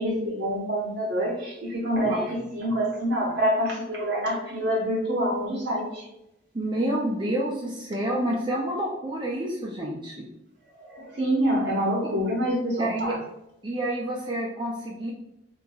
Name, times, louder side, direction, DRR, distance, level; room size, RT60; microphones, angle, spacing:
voice 1, 0.0-6.1 10.8-13.2, equal, 55° right, -3 dB, 1.1 m, -26 dB
voice 2, 6.5-10.2 12.8-13.1 13.6-15.1, right 1 dB, 25° right, -4 dB, 0.4 m, -28 dB
3.7 x 2.8 x 2.3 m, 0.86 s
head